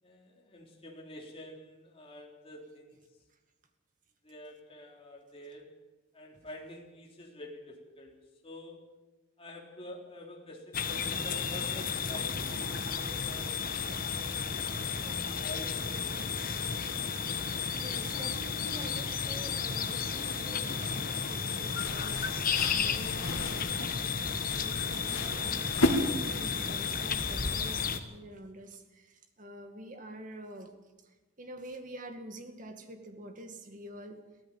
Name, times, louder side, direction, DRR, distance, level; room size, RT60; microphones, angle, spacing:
voice 1, 0.0-3.0 4.2-5.7 6.1-8.2 8.4-8.9 9.4-13.6 14.2-14.5 14.8-16.3 22.6-22.8, left 1 dB, 25° left, -1 dB, 3.7 m, -48 dB
sound 1, 10.7-28.0, left 6 dB, 40° left, 1.3 m, -33 dB
voice 2, 17.7-24.1 24.5-30.7 31.0-34.2, right 1 dB, 40° right, 6 dB, 2.2 m, -47 dB
sound 2, 21.6-26.6, left 1 dB, 80° left, 2.8 m, -34 dB
22.5 x 15.5 x 7.4 m, 1.2 s
head